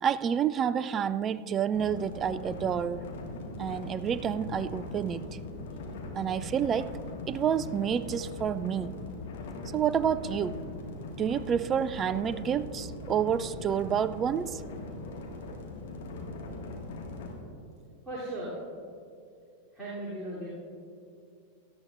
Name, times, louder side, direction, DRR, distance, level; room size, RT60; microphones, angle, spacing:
voice 1, 0.0-3.1 3.6-5.2 6.1-7.0 7.3-9.0 9.7-10.6 11.2-14.6, right 8 dB, 25° right, 0.3 m, -29 dB
sound 1, 1.7-17.3, left 2 dB, 55° left, 1.7 m, -40 dB
voice 2, 18.0-18.5 19.7-20.5, right 1 dB, 10° right, 3.0 m, -37 dB
17.5 x 12.5 x 2.5 m
figure-of-eight pair, 90°, 0 cm